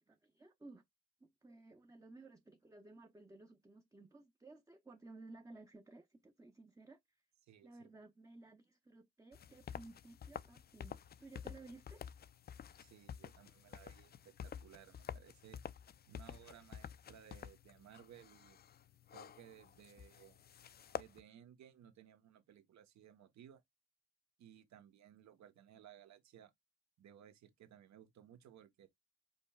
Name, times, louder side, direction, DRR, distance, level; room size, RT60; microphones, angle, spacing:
voice 1, 0.1-0.8 1.2-7.0 7.6-12.1, right 2 dB, 10° right, 0.6 m, -57 dB
voice 2, 7.4-7.9 12.8-15.6 16.1-18.6 19.1-20.4 21.0-23.6 24.4-26.5 27.0-28.9, right 10 dB, 65° right, 1.0 m, -60 dB
sound 1, 9.3-21.2, left 8 dB, 35° left, 0.4 m, -50 dB
5.3 x 4.4 x 2.2 m
cardioid pair, 90°, 30 cm